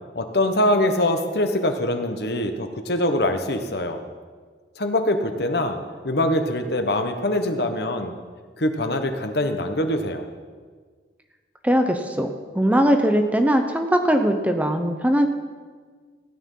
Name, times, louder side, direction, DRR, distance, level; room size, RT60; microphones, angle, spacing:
voice 1, 0.1-4.0 4.8-5.8 6.0-8.1 8.6-10.3, left 1 dB, 60° left, 7 dB, 1.2 m, -23 dB
voice 2, 11.6-15.3, equal, 10° right, 5 dB, 0.8 m, -20 dB
16.0 x 9.9 x 5.6 m, 1.6 s
head